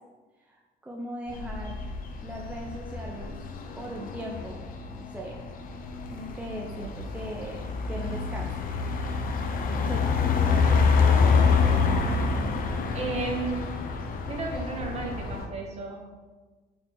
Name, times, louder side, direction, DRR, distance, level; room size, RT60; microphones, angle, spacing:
voice 1, 0.8-1.9 2.2-3.4 3.8-4.7 4.9-5.4 6.1-8.6 9.8-11.3, equal, 10° right, -1 dB, 0.9 m, -39 dB
sound 1, 1.3-15.5, left 5 dB, 55° left, 1.0 m, -27 dB
voice 2, 12.9-13.7 14.3-16.1, right 3 dB, 40° right, -1 dB, 1.9 m, -33 dB
8.2 x 5.1 x 3.9 m, 1.3 s
cardioid pair, 110°, 17 cm